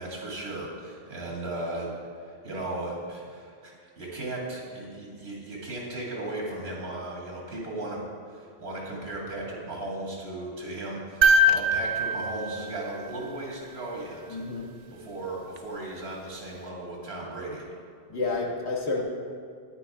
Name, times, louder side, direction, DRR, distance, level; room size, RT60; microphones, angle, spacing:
voice 1, 0.0-1.9 2.2-8.0 8.3-14.4 14.9-17.6, right 2 dB, 75° right, -3 dB, 2.1 m, -36 dB
sound 1, 11.2-13.5 15.6-15.7, equal, 50° right, 0.5 m, -23 dB
voice 2, 14.3-14.7 18.1-19.0, left 3 dB, 90° left, -2 dB, 1.6 m, -29 dB
9.7 x 9.3 x 3.5 m, 2.2 s
omnidirectional pair, 1.1 m